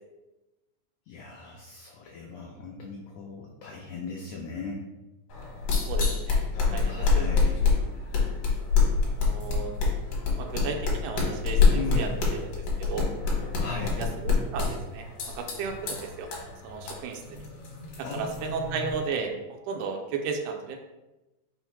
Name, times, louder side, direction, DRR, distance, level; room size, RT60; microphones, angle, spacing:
voice 1, 1.1-4.8 6.9-7.6 11.7-12.2 13.6-14.0 18.0-18.8, left 4 dB, 90° left, 0 dB, 1.4 m, -37 dB
sound 1, 5.3-19.1, left 4 dB, 65° left, 2.0 m, -27 dB
voice 2, 5.9-6.4 6.7-7.3 9.0-9.7 10.4-12.1 12.4-13.1 13.5-16.3 16.6-17.4 18.0-20.8, right 5 dB, 80° right, 4 dB, 2.0 m, -34 dB
5.5 x 2.1 x 4.5 m, 1.0 s
omnidirectional pair, 3.6 m